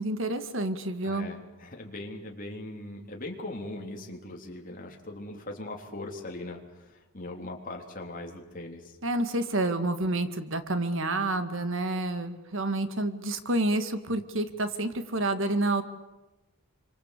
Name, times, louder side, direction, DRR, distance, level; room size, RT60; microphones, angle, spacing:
voice 1, 0.0-1.3 9.0-15.8, right 2 dB, 60° right, 9 dB, 2.0 m, -29 dB
voice 2, 1.0-9.0, left 2 dB, 40° left, 0 dB, 3.7 m, -40 dB
27.0 x 25.0 x 8.4 m, 1.1 s
head